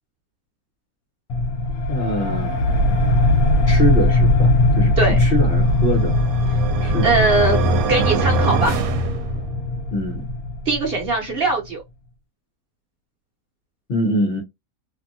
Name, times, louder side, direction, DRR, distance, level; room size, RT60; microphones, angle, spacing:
sound 1, 1.3-11.5, left 2 dB, 80° left, 1.0 m, -20 dB
voice 1, 1.9-2.6 3.7-6.1 6.8-7.1 9.9-10.2 13.9-14.4, left 1 dB, 45° left, 0.9 m, -23 dB
sound 2, 5.5-9.8, right 3 dB, 85° right, 1.1 m, -24 dB
voice 2, 7.0-7.6 7.9-8.8 10.7-11.8, right 3 dB, 50° right, 0.9 m, -20 dB
2.7 x 2.6 x 2.6 m
omnidirectional pair, 1.5 m